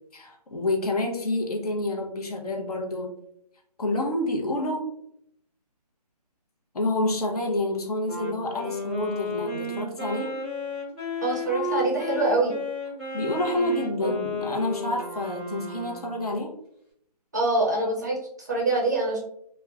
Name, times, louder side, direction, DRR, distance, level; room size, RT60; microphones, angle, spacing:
voice 1, 0.1-3.2 3.8-4.8 6.7-10.3 13.1-16.5, left 1 dB, 65° left, 1 dB, 0.8 m, -28 dB
Wind instrument woodwind instrument, 8.0-16.3, left 1 dB, 15° left, 0.8 m, -33 dB
voice 2, 11.2-12.6 14.0-14.1 17.3-19.2, right 2 dB, 25° right, -3 dB, 0.5 m, -25 dB
3.3 x 2.2 x 2.3 m, 0.71 s
hypercardioid pair, 170°, 21 cm